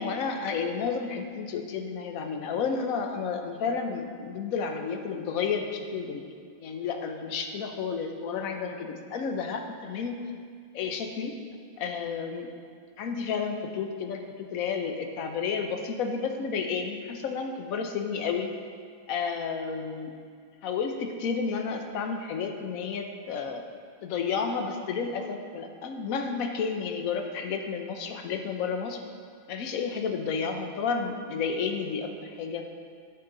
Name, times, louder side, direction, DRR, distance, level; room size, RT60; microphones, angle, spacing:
voice 1, 0.0-6.3 6.6-10.2 10.7-11.4 11.8-12.5 13.0-18.5 19.1-20.1 20.6-23.6 24.0-29.0 29.5-32.6, left 5 dB, 60° left, 5 dB, 0.9 m, -31 dB
10.5 x 8.2 x 3.9 m, 2.1 s
omnidirectional pair, 2.2 m